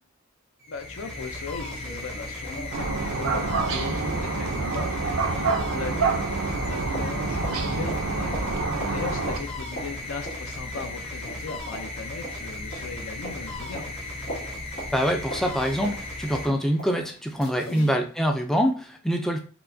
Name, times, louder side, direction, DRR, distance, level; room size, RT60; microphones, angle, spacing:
sound 1, 0.6-17.1, left 2 dB, 30° left, 0.7 m, -36 dB
voice 1, 0.7-13.9 17.6-18.0, left 4 dB, 80° left, 7 dB, 0.5 m, -38 dB
sound 2, 0.7-0.8 1.1-1.2 1.6-6.1 6.4-18.0 18.4-18.5, equal, 50° left, 1.7 m, -42 dB
sound 3, 2.7-9.4, right 4 dB, 80° right, 0.5 m, -27 dB
voice 2, 14.9-19.4, equal, ahead, 3 dB, 0.3 m, -25 dB
4.5 x 2.1 x 2.6 m, 0.40 s
head